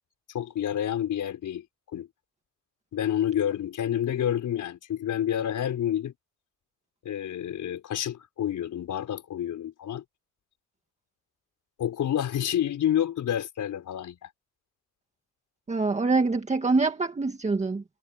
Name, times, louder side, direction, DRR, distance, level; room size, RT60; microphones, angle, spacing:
voice 1, 0.3-1.6 1.9-2.1 2.9-6.1 7.0-10.0 11.8-14.3, left 10 dB, 85° left, 5.1 m, -29 dB
voice 2, 15.7-17.8, right 3 dB, 25° right, 1.9 m, -25 dB
wide cardioid pair, 150°, 30 cm